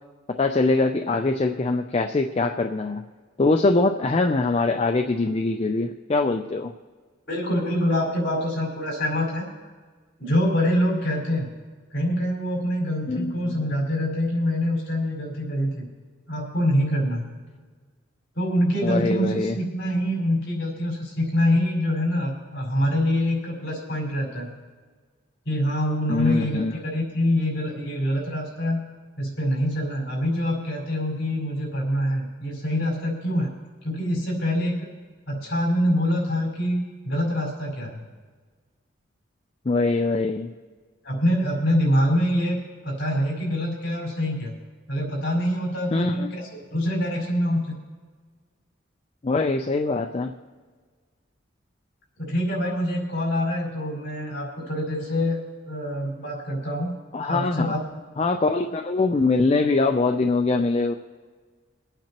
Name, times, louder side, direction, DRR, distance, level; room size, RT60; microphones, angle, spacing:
voice 1, 0.4-3.0 3.4-6.7 13.1-13.6 18.8-19.6 26.1-26.7 39.7-40.5 45.9-46.3 49.2-50.3 57.1-57.8 58.2-60.9, left 3 dB, 30° left, 4 dB, 0.4 m, -23 dB
voice 2, 7.3-9.5 10.2-11.5 11.9-15.9 16.3-17.2 18.3-24.5 25.4-28.8 29.2-33.5 33.8-34.9 35.3-38.0 41.0-44.5 44.9-47.8 52.2-55.4 55.6-56.9 57.3-57.8, equal, 55° left, -3 dB, 4.8 m, -25 dB
25.0 x 9.0 x 2.9 m, 1.5 s
head